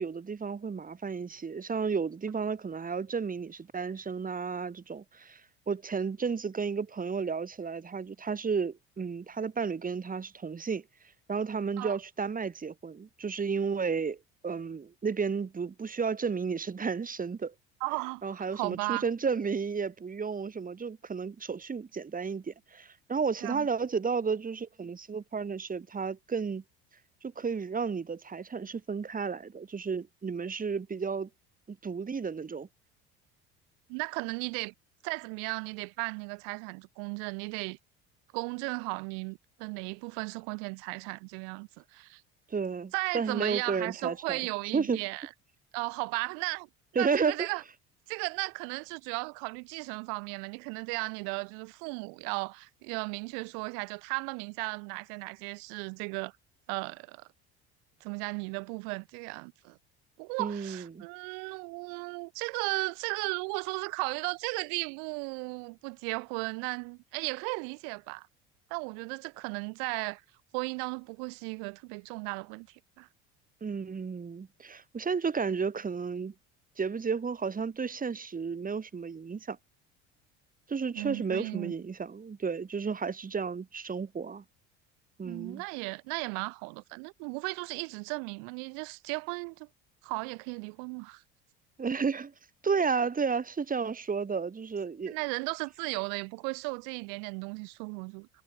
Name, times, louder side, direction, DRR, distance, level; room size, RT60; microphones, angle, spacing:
voice 1, 0.0-10.8 11.3-17.5 18.2-26.6 27.2-31.3 31.7-32.7 42.5-44.5 44.7-45.0 47.0-47.5 60.4-61.0 73.6-76.3 76.8-79.6 80.7-84.4 85.2-85.6 91.8-92.3 92.6-95.2, right 5 dB, 25° right, 2.0 m, -32 dB
voice 2, 17.8-19.0 23.4-23.7 33.9-34.7 35.0-37.8 38.3-42.2 42.9-45.3 45.7-46.7 46.9-47.6 48.1-56.3 56.7-57.3 58.0-59.8 60.2-68.3 68.7-70.2 70.5-72.7 73.0-73.1 80.9-81.7 85.2-89.7 90.0-91.2 95.1-98.3, right 40 dB or more, 70° right, 1.3 m, -35 dB
hypercardioid pair, 70°, 33 cm